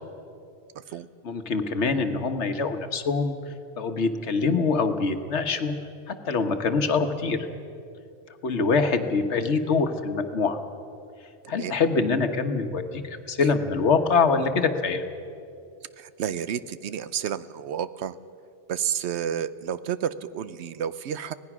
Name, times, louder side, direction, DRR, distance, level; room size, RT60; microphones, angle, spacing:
voice 1, 1.2-3.4 3.8-5.7 6.1-7.5 8.4-10.6 11.5-15.0, left 4 dB, 80° left, 8 dB, 1.5 m, -24 dB
voice 2, 16.0-18.2 18.7-21.3, right 9 dB, 80° right, 15 dB, 0.9 m, -30 dB
25.5 x 18.0 x 6.1 m, 2.6 s
omnidirectional pair, 1.1 m